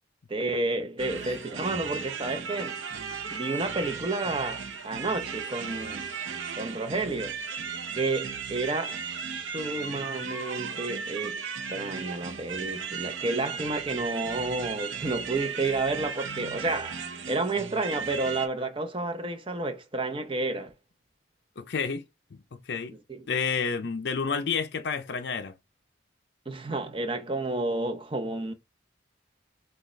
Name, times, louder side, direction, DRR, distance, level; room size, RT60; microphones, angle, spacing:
voice 1, 0.3-2.8 3.3-6.1 6.6-7.4 7.9-20.7 23.1-23.3 26.5-28.5, right 2 dB, 25° right, 0.7 m, -31 dB
sound 1, 1.0-18.5, right 6 dB, 75° right, 0.7 m, -36 dB
voice 2, 21.6-22.0 22.3-23.0 23.3-25.5, left 5 dB, 55° left, 0.5 m, -30 dB
6.3 x 2.3 x 3.2 m
head